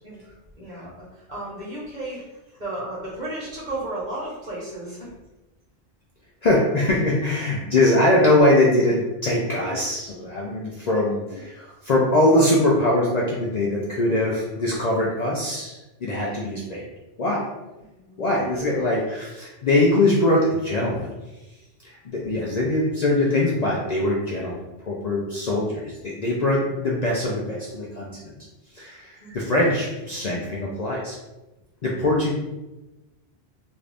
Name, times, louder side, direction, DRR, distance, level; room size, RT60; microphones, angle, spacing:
voice 1, 0.6-2.2 2.6-5.1 11.3-11.4 16.1-16.6 18.1-18.7 29.2-29.5 32.0-32.2, right 1 dB, 45° right, -6 dB, 1.1 m, -34 dB
voice 2, 6.4-16.9 17.2-17.4 18.2-21.1 21.8-28.4 28.7-31.2 31.8-32.3, left 1 dB, 50° left, -4 dB, 0.5 m, -22 dB
2.6 x 2.5 x 3.3 m, 1.0 s
omnidirectional pair, 1.1 m